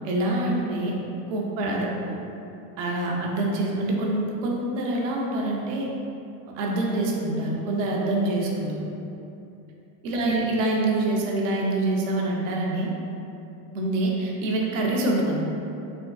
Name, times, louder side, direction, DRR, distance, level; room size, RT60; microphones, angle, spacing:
voice 1, 0.0-0.9 1.3-1.9 2.8-5.9 6.5-8.8 10.0-12.9 13.7-15.4, right 2 dB, 55° right, -2 dB, 0.6 m, -25 dB
3.5 x 3.4 x 2.3 m, 2.8 s
supercardioid pair, 175°, 47 cm